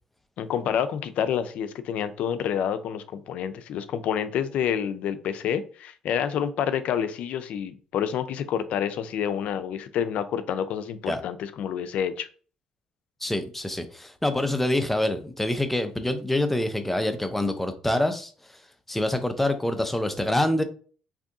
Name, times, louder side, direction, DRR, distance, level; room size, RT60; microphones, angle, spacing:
voice 1, 0.4-12.3, left 8 dB, 70° left, 0.4 m, -28 dB
voice 2, 13.2-18.3 18.9-20.6, left 1 dB, 10° left, 0.5 m, -26 dB
2.7 x 2.5 x 3.6 m
cardioid pair, 90°, 2 cm